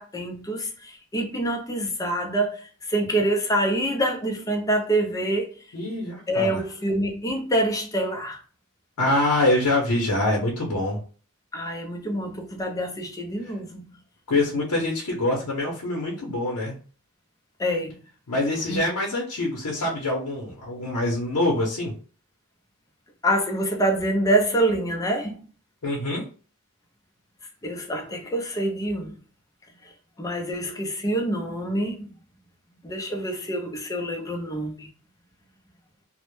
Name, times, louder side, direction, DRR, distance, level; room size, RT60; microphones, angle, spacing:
voice 1, 0.0-5.5 6.3-8.4 11.5-13.9 17.6-18.0 18.7-18.8 23.2-25.4 27.6-29.2 30.2-32.1 32.8-34.9, right 1 dB, 15° left, 0.5 m, -26 dB
voice 2, 5.7-6.6 9.0-11.0 14.3-16.7 18.3-21.9 25.8-26.2, left 2 dB, 75° left, 0.7 m, -25 dB
2.1 x 2.0 x 3.0 m
head